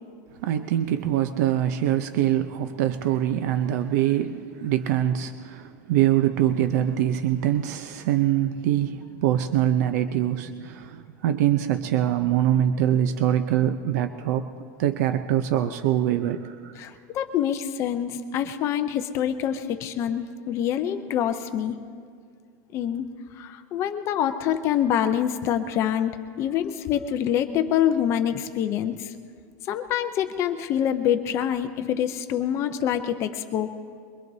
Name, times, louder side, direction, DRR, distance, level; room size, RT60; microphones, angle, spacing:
voice 1, 0.4-14.4 14.8-16.7, right 11 dB, 65° right, 8 dB, 0.6 m, -24 dB
voice 2, 16.8-21.8 22.7-23.1 23.4-29.1 29.7-33.7, left 10 dB, 30° left, 8 dB, 0.5 m, -26 dB
23.0 x 23.0 x 2.7 m, 2.2 s
supercardioid pair, 180°, 10 cm